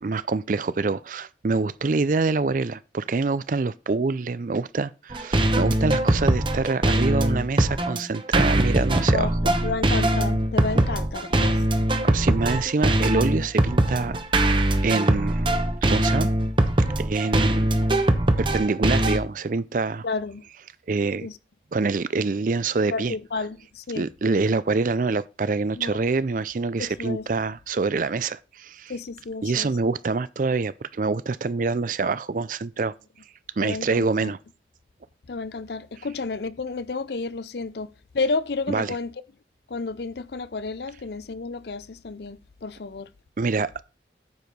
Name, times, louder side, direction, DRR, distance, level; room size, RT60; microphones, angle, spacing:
voice 1, 0.0-9.5 10.7-10.8 12.0-14.2 14.8-15.5 15.9-16.3 17.0-17.9 18.4-20.1 20.9-21.3 21.7-23.1 23.9-28.9 29.4-32.9 33.6-34.4 38.7-39.0 43.4-43.7, right 4 dB, 45° right, 0.4 m, -26 dB
sound 1, 5.1-19.2, right 1 dB, 25° right, 0.8 m, -22 dB
voice 2, 9.6-11.6 20.0-20.4 21.2-21.3 22.9-24.0 25.8-26.0 27.0-27.2 28.9-29.7 33.6-34.3 35.3-37.9 38.1-39.1 39.7-43.1, left 3 dB, 65° left, 0.6 m, -31 dB
9.4 x 4.8 x 5.2 m
head